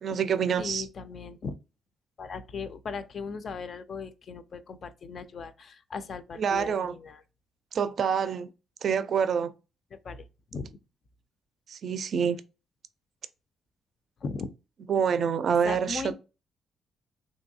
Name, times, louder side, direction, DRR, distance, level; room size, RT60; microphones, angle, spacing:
voice 1, 0.0-0.9 6.4-7.0 7.7-8.5 8.8-9.5 11.7-12.4 14.9-16.1, right 7 dB, 55° right, 0.3 m, -26 dB
voice 2, 0.6-1.6 2.2-7.2 9.9-10.3 10.5-10.7 14.2-14.5 15.6-16.1, left 4 dB, 50° left, 0.4 m, -38 dB
3.1 x 2.7 x 2.6 m
cardioid pair, 90°, 0 cm